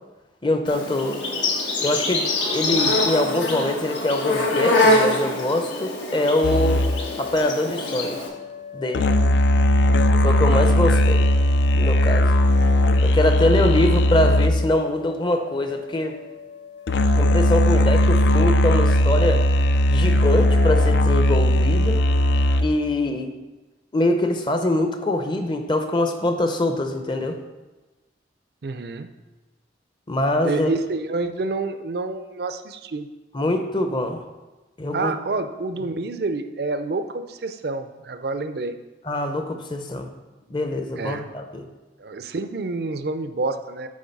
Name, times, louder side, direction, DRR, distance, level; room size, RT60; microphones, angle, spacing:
voice 1, 0.4-1.2 1.8-6.8 7.2-8.2 8.7-9.0 10.2-11.3 11.7-12.4 13.0-16.1 17.1-19.4 19.9-22.0 22.6-23.3 23.9-27.4 30.1-30.7 33.3-34.2 34.8-35.1 39.0-40.1 40.5-41.7, left 1 dB, 25° left, 6 dB, 0.6 m, -23 dB
Insect, 0.7-8.3, left 2 dB, 85° left, 1.3 m, -24 dB
sound 1, 6.4-14.9 16.9-22.7, left 1 dB, 70° left, 0.4 m, -18 dB
voice 2, 10.3-11.0 28.6-29.1 30.4-33.1 34.9-38.8 41.0-41.3 42.0-43.9, right 3 dB, 60° right, 9 dB, 0.5 m, -28 dB
8.6 x 3.8 x 5.3 m, 1.1 s
head